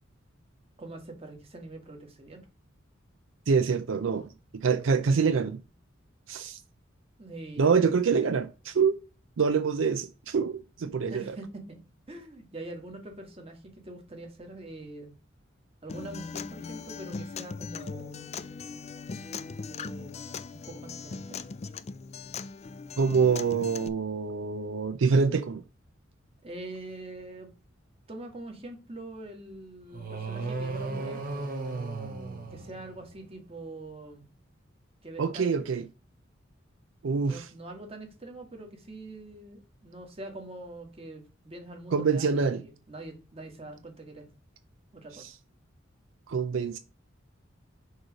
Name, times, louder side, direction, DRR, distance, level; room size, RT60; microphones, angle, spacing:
voice 1, 0.8-2.4 7.2-7.8 11.1-11.8 12.1-15.1 15.8-18.3 19.7-20.2 20.5-21.4 26.4-27.5 28.1-31.3 32.5-34.3 35.0-35.7 37.2-44.3 44.9-45.3, right 2 dB, 30° right, 1.5 m, -44 dB
voice 2, 3.5-4.3 4.6-5.6 6.3-6.6 7.6-9.0 9.4-11.4 23.0-25.6 35.2-35.8 37.0-37.4 41.9-42.6 46.3-46.8, right 5 dB, 75° right, 0.4 m, -25 dB
Acoustic guitar, 15.9-23.9, left 5 dB, 35° left, 0.4 m, -39 dB
sound 1, 29.9-33.3, right 3 dB, 45° right, 1.1 m, -35 dB
6.3 x 3.2 x 5.0 m
head